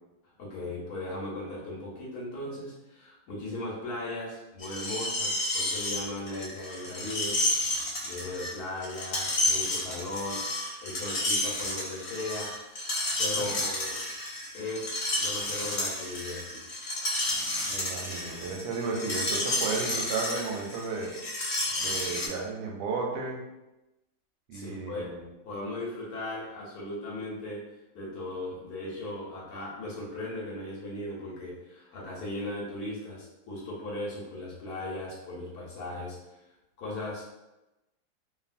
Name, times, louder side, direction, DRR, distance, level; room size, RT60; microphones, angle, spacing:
voice 1, 0.2-7.4 8.0-12.5 13.2-14.0 14.5-16.7 24.5-25.1 25.4-27.6 27.9-36.4 36.8-37.3, left 2 dB, 65° left, -4 dB, 1.1 m, -37 dB
Screech, 4.6-22.3, left 1 dB, 85° left, 0.5 m, -31 dB
voice 2, 17.7-21.1 21.8-23.4 24.5-25.3, right 4 dB, 85° right, 0 dB, 1.3 m, -33 dB
2.8 x 2.6 x 2.5 m, 0.97 s
omnidirectional pair, 2.0 m